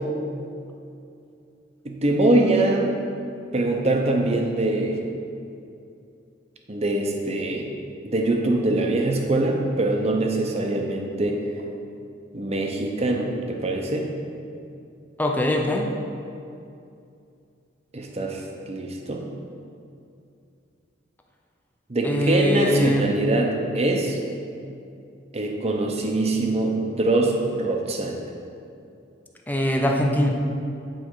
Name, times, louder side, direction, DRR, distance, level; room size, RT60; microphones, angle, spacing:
voice 1, 1.8-2.9 3.5-5.1 6.7-7.7 8.0-11.6 12.3-14.1 17.9-19.2 21.9-24.2 25.3-28.2, right 2 dB, 35° right, 2 dB, 0.8 m, -23 dB
voice 2, 15.2-15.9 22.0-23.0 29.5-30.3, left 1 dB, 10° left, 1 dB, 0.6 m, -22 dB
8.9 x 4.4 x 4.7 m, 2.5 s
head